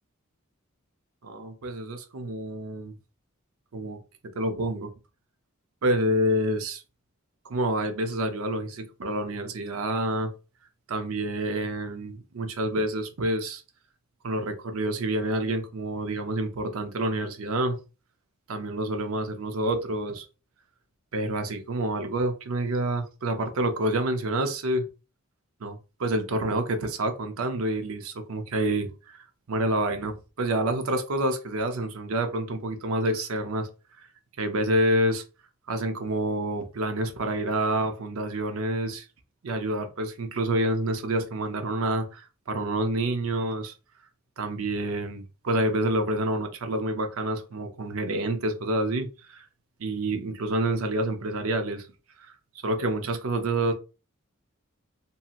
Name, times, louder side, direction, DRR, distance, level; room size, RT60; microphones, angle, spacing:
voice 1, 1.2-2.9 3.7-4.9 5.8-6.8 7.4-10.3 10.9-13.6 14.2-17.8 18.5-20.3 21.1-24.8 25.6-33.7 34.0-34.1 34.4-35.2 35.7-39.1 39.4-43.7 44.4-49.5 49.8-51.9 52.2-52.3 52.6-53.7, right 1 dB, 85° right, 0.6 m, -28 dB
2.7 x 2.7 x 2.4 m
head